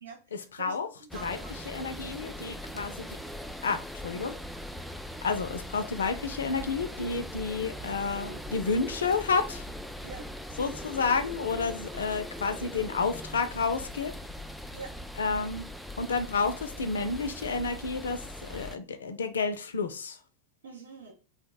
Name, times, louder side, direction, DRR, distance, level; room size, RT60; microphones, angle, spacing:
voice 1, 0.0-0.7 1.0-2.0 10.0-10.3 14.7-14.9 20.6-21.1, right 4 dB, 75° right, 0.8 m, -45 dB
sound 1, 1.1-18.8, equal, ahead, 0.3 m, -41 dB
voice 2, 1.7-3.1 3.6-4.3 5.2-9.7 10.6-14.1 15.2-15.7 16.0-20.2, left 4 dB, 80° left, 0.4 m, -30 dB
2.8 x 2.1 x 3.9 m
hypercardioid pair, 95°, 0 cm